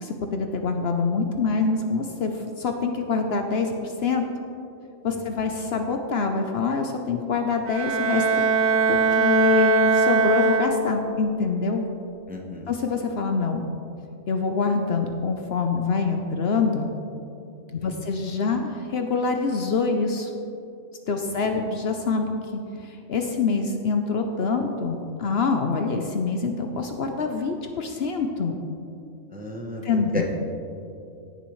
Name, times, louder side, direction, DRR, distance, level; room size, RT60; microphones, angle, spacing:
voice 1, 0.0-2.3 2.6-4.2 5.0-8.2 8.6-11.8 12.7-13.7 14.3-16.9 17.7-20.3 21.1-28.5 29.8-30.2, left 4 dB, 60° left, 4 dB, 0.8 m, -25 dB
Bowed string instrument, 7.7-11.2, right 4 dB, 85° right, 1.3 m, -21 dB
voice 2, 12.3-12.7 17.8-17.9 21.5-21.7 29.3-29.8 30.1-30.2, left 1 dB, 10° right, 0 dB, 0.7 m, -34 dB
17.0 x 6.9 x 3.1 m, 2.7 s
omnidirectional pair, 1.4 m